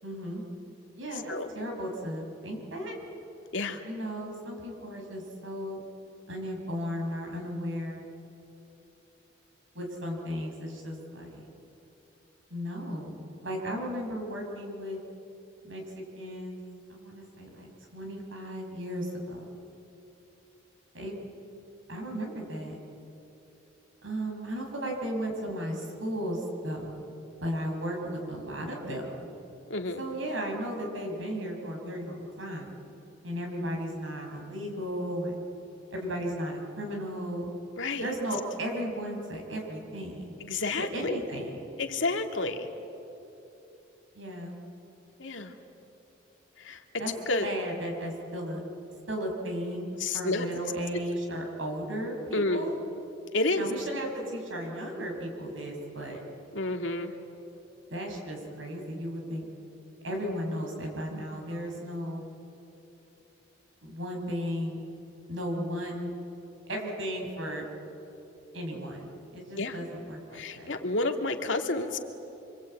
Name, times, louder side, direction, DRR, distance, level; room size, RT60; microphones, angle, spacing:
voice 1, 0.0-0.4 1.0-2.9 3.8-5.8 6.3-8.1 9.7-11.5 12.5-15.0 15.6-16.6 16.9-19.5 20.9-21.2 21.9-22.8 24.0-27.0 27.4-29.3 30.0-32.7 33.2-35.4 35.9-37.5 38.0-40.4 40.8-41.6 44.1-44.6 47.0-47.1 47.4-48.6 49.1-52.7 53.6-56.2 57.9-59.5 60.0-62.2 63.8-64.8 65.3-66.1 66.7-67.6 68.5-70.7, equal, 90° right, 1 dB, 6.0 m, -35 dB
voice 2, 3.5-3.8 29.7-30.0 37.8-38.1 40.4-41.2 41.8-42.7 45.2-45.5 46.6-46.8 47.3-47.5 50.0-50.5 51.3-51.5 52.3-52.6 53.3-53.6 56.5-57.1 69.6-69.8 70.3-72.0, left 2 dB, 80° left, 4 dB, 2.2 m, -30 dB
26.5 x 25.5 x 8.8 m, 3.0 s
head